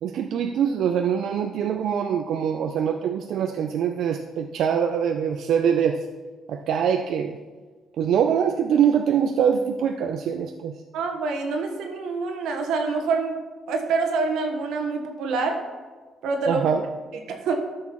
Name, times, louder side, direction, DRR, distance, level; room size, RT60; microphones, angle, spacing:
voice 1, 0.0-6.0 6.5-7.4 8.0-10.7 16.5-16.8, right 8 dB, 65° right, 5 dB, 0.4 m, -23 dB
voice 2, 10.9-13.4 13.7-15.6 16.2-16.7 17.3-17.5, right 4 dB, 90° right, 4 dB, 1.3 m, -26 dB
13.0 x 6.3 x 3.1 m, 1.4 s
cardioid pair, 150°, 0 cm